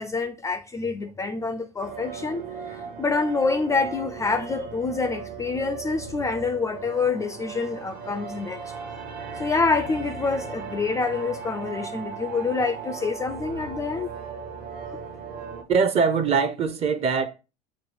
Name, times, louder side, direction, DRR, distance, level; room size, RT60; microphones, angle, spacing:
voice 1, 0.0-8.7 9.4-14.1, left 4 dB, 15° left, 0.3 m, -27 dB
sound 1, 1.8-15.6, right 6 dB, 50° right, 1.0 m, -37 dB
voice 2, 15.7-17.3, right 5 dB, 30° right, 0.6 m, -22 dB
6.9 x 2.3 x 3.2 m
hypercardioid pair, 85°, 21 cm